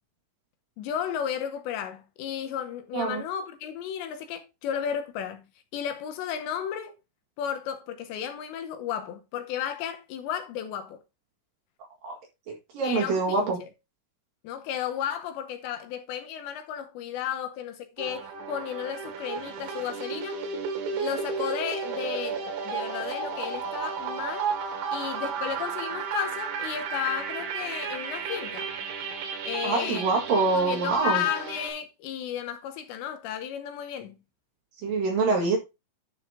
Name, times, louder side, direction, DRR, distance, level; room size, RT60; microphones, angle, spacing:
voice 1, 0.8-5.4 5.7-6.9 7.4-11.0 12.8-13.7 14.4-20.4 20.9-24.5 24.9-28.7 29.4-30.1 30.5-34.2, left 9 dB, 75° left, 2.9 m, -33 dB
voice 2, 12.5-13.6 29.6-31.2 34.8-35.6, right 3 dB, 55° right, 2.9 m, -25 dB
sound 1, 18.0-31.7, right 6 dB, 80° right, 4.5 m, -33 dB
11.0 x 5.6 x 3.7 m
omnidirectional pair, 5.5 m